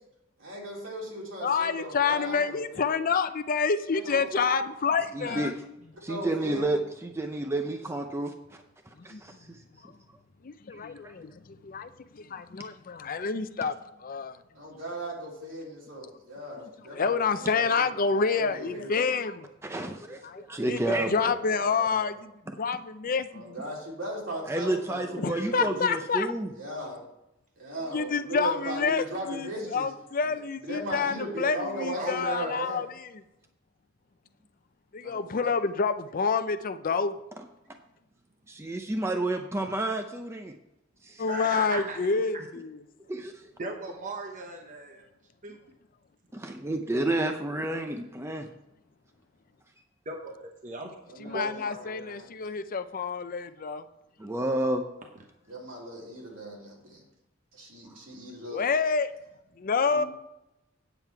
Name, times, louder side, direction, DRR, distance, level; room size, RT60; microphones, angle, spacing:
voice 1, 0.4-2.9 3.9-4.4 5.2-5.4 5.9-6.7 7.8-7.9 14.6-19.1 21.5-22.1 23.3-26.0 26.6-27.0 27.6-29.9 30.2-32.8 35.0-35.5 51.0-52.3 55.5-57.0 57.5-58.6 59.9-60.1, right 1 dB, 70° right, 3.4 m, -38 dB
voice 2, 1.4-5.5 9.0-9.2 9.8-9.9 10.4-14.4 16.9-22.3 22.6-23.6 25.2-26.3 27.9-33.2 34.9-37.2 41.2-42.8 51.2-53.8 58.5-59.1 59.6-60.0, left 5 dB, 45° left, 0.5 m, -28 dB
voice 3, 5.1-5.5 6.0-8.3 9.0-9.3 10.7-11.1 19.6-21.3 22.5-22.6 24.5-26.5 38.5-40.5 41.0-41.2 43.1-43.3 46.3-48.5 54.2-54.8, right 2 dB, 15° right, 0.5 m, -30 dB
voice 4, 31.9-32.6 41.2-42.1 43.6-45.0 45.4-45.6 50.1-50.9 51.3-51.8, right 2 dB, 40° right, 1.0 m, -37 dB
9.0 x 7.8 x 4.6 m
head